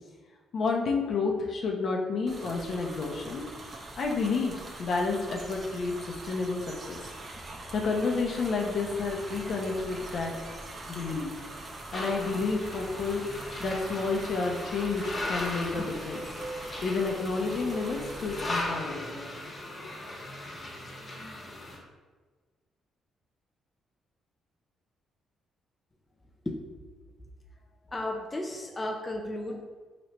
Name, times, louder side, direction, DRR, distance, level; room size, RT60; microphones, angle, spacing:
voice 1, 0.5-3.4 4.0-5.9 6.2-7.0 7.7-10.3 10.9-11.3 11.9-13.2 13.6-16.2 16.8-19.1, left 4 dB, 60° left, 1 dB, 0.7 m, -30 dB
sound 1, 2.3-18.6, right 2 dB, 35° right, 0.7 m, -43 dB
sound 2, 11.9-21.8, left 1 dB, 35° left, 1.2 m, -38 dB
voice 2, 27.9-29.6, left 1 dB, 20° left, 1 dB, 0.4 m, -34 dB
4.5 x 3.0 x 3.0 m, 1.4 s
cardioid pair, 90°, 0 cm